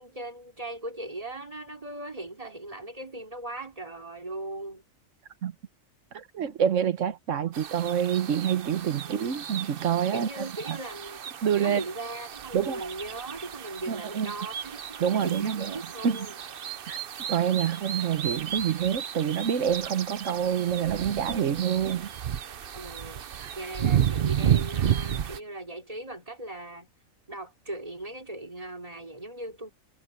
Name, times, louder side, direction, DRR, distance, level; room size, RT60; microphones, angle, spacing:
voice 1, 0.0-4.8 9.1-9.3 10.1-11.2 11.5-16.4 22.7-23.3 23.5-26.9 27.3-29.7, right 2 dB, 25° right, 3.0 m, -39 dB
voice 2, 6.1-10.8 11.4-11.8 12.5-12.9 13.9-14.3 15.0-16.2 16.9-17.0 17.3-22.1 23.4-23.5, right 8 dB, 65° right, 1.3 m, -27 dB
sound 1, 7.5-25.4, right 9 dB, 50° right, 0.8 m, -32 dB
omnidirectional pair, 1.4 m